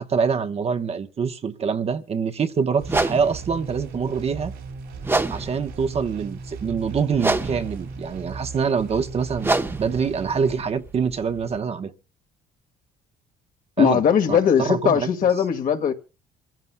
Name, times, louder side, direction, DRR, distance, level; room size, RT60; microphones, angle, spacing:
voice 1, 0.0-4.5 5.3-11.9 13.8-14.0 14.3-15.1, right 6 dB, 35° right, 1.0 m, -25 dB
sound 1, 2.8-11.6, right 2 dB, 15° right, 0.9 m, -29 dB
sound 2, 2.8-10.6, right 4 dB, 90° right, 4.5 m, -37 dB
voice 2, 13.8-15.9, left 8 dB, 55° left, 1.7 m, -19 dB
26.5 x 15.0 x 2.2 m
cardioid pair, 110°, 17 cm